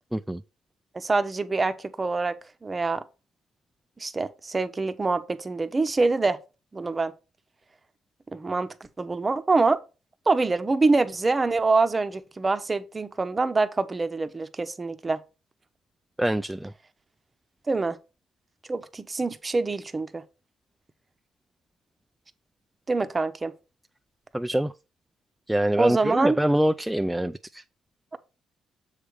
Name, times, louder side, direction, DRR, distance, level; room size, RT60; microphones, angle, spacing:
voice 1, 0.9-3.0 4.0-6.4 6.7-7.1 8.3-9.8 10.3-15.2 17.7-18.0 18.7-20.2 22.9-23.5 25.8-26.4, right 3 dB, 25° right, 0.8 m, -25 dB
voice 2, 16.2-16.7 24.3-24.7 25.5-27.6, right 1 dB, 5° right, 0.3 m, -24 dB
7.3 x 3.4 x 6.3 m
cardioid pair, 90°, 0 cm